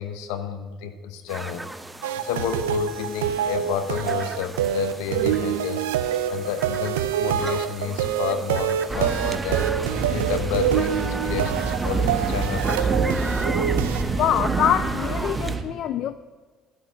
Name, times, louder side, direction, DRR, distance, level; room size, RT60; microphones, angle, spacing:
voice 1, 0.0-1.6 2.2-5.8 6.3-9.7 10.1-13.0, left 8 dB, 80° left, 9 dB, 0.9 m, -30 dB
sound 1, 1.3-15.6, right 2 dB, 15° right, 0.7 m, -37 dB
sound 2, 2.0-14.0, right 10 dB, 90° right, 0.5 m, -26 dB
sound 3, 8.9-15.6, right 4 dB, 35° right, 1.5 m, -27 dB
voice 2, 14.1-16.1, left 10 dB, 65° left, 13 dB, 0.4 m, -24 dB
11.0 x 5.9 x 8.5 m, 1.4 s
hypercardioid pair, 65°, 0 cm